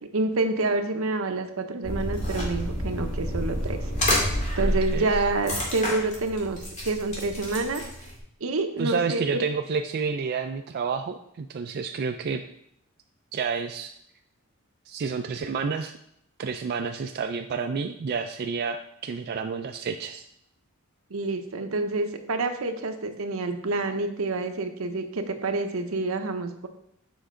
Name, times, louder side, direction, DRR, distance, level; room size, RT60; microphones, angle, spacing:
voice 1, 0.1-3.8 4.2-7.8 8.4-9.2 21.1-26.7, right 3 dB, 75° right, 6 dB, 0.8 m, -28 dB
sound 1, 1.8-8.2, equal, 35° left, 2.1 m, -29 dB
voice 2, 4.6-5.1 8.8-12.4 13.3-13.9 14.9-15.9 16.4-20.2, right 5 dB, 50° right, 5 dB, 0.3 m, -30 dB
7.1 x 5.4 x 3.7 m, 0.73 s
head